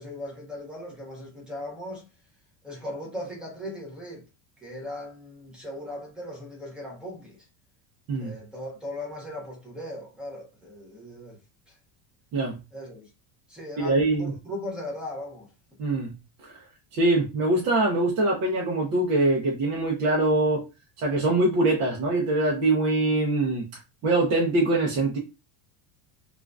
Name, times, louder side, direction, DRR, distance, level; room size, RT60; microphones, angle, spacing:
voice 1, 0.0-2.0 2.6-4.2 4.6-7.5 8.2-11.4 11.7-11.8 12.7-13.1 13.5-15.5, left 1 dB, ahead, 0.7 m, -38 dB
voice 2, 13.8-14.4 15.8-16.1 16.4-16.6 16.9-20.7 21.0-23.7 24.0-25.2, right 2 dB, 45° right, 0.7 m, -23 dB
3.6 x 2.5 x 2.3 m
cardioid pair, 170°, 46 cm